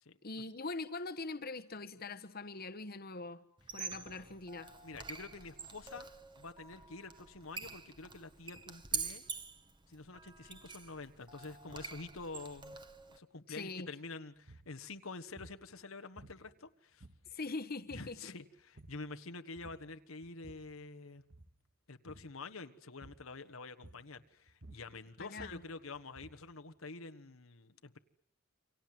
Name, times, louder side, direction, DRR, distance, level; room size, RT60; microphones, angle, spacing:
voice 1, 0.2-3.4 3.7-4.7 13.5-13.9 17.3-18.3 25.2-25.6, left 3 dB, 50° left, 8 dB, 1.3 m, -42 dB
Squeak, 3.6-13.2, right 5 dB, 20° right, 1.7 m, -46 dB
voice 2, 4.8-6.1 6.4-9.2 9.9-12.8 13.1-17.1 17.9-21.2 21.9-28.0, left 3 dB, 80° left, 9 dB, 1.4 m, -48 dB
sound 1, 14.4-14.7 15.4-15.7 16.2-16.7 17.0-17.5 17.9-18.2 18.6-19.1 19.6-19.9 20.2-20.8 21.2-21.6 22.1-22.4 23.0-23.4 23.8-24.2 24.5-26.5, right 2 dB, 55° right, 2.2 m, -56 dB
29.0 x 25.5 x 7.7 m, 0.67 s
head